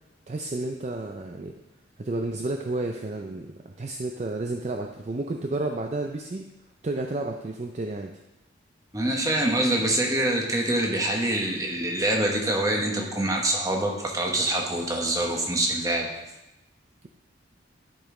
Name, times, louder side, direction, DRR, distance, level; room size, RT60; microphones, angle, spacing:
voice 1, 0.3-1.5 2.0-6.4 6.8-8.1, right 2 dB, 35° right, 3 dB, 0.4 m, -31 dB
voice 2, 8.9-16.1, right 1 dB, 15° right, 0 dB, 1.0 m, -25 dB
11.5 x 5.2 x 3.7 m, 0.98 s
head